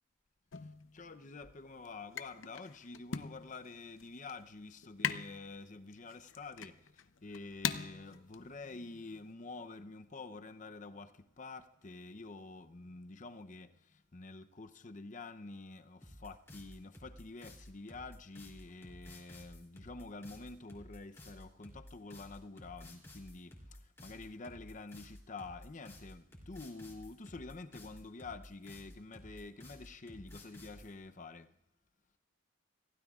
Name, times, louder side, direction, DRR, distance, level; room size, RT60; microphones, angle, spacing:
sound 1, 0.5-9.3, left 7 dB, 75° left, 0.7 m, -43 dB
voice 1, 0.5-31.6, left 3 dB, 40° left, 0.7 m, -48 dB
sound 2, 16.0-30.9, left 1 dB, 15° left, 2.9 m, -53 dB
27.5 x 16.0 x 2.4 m
head